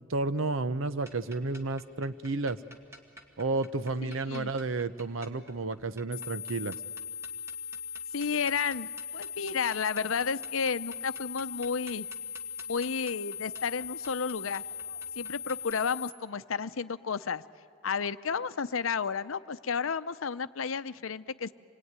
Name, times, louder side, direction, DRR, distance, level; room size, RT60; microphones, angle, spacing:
voice 1, 0.0-2.6 3.4-6.7, right 3 dB, 80° right, 13 dB, 0.8 m, -31 dB
sound 1, 1.0-15.7, right 1 dB, 15° right, 1.8 m, -53 dB
voice 2, 4.0-4.5 8.1-12.1 12.7-14.6 15.2-17.4 17.8-21.5, left 6 dB, 80° left, 13 dB, 0.7 m, -32 dB
sound 2, 6.1-16.1, left 7 dB, 55° left, 1.2 m, -39 dB
27.0 x 21.5 x 9.6 m, 2.5 s
head